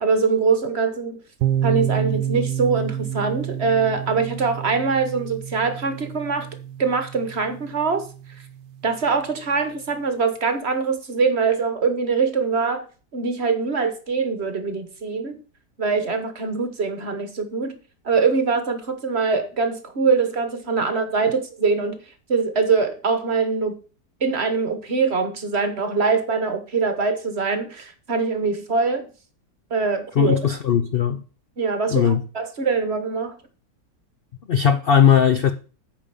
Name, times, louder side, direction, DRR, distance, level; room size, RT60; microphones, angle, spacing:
voice 1, 0.0-1.2 1.6-6.5 6.8-8.0 8.8-12.9 13.1-15.4 15.8-17.8 18.0-22.0 22.3-23.8 24.2-29.1 29.7-30.4 31.6-33.3, right 4 dB, 40° right, 1.3 m, -23 dB
sound 1, 1.4-9.1, right 10 dB, 90° right, 1.2 m, -29 dB
voice 2, 30.2-31.2 31.9-32.2 34.5-35.5, left 8 dB, 70° left, 0.5 m, -18 dB
8.8 x 5.1 x 6.9 m
omnidirectional pair, 1.8 m